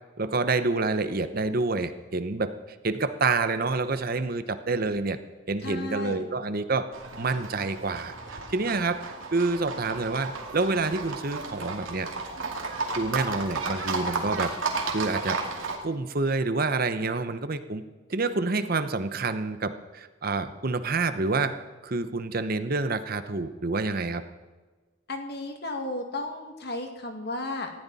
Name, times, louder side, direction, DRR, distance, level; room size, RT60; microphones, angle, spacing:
voice 1, 0.2-2.5 2.8-5.2 5.5-6.9 7.2-12.1 13.0-14.5 14.9-17.8 18.1-21.6 21.8-24.2, right 3 dB, 45° right, 11 dB, 0.8 m, -28 dB
voice 2, 5.6-6.2 25.1-27.7, left 2 dB, 50° left, 4 dB, 2.1 m, -34 dB
Livestock farm animals working animals, 6.9-15.8, right 3 dB, 70° right, 2.4 m, -33 dB
19.5 x 14.5 x 4.2 m, 1.3 s
head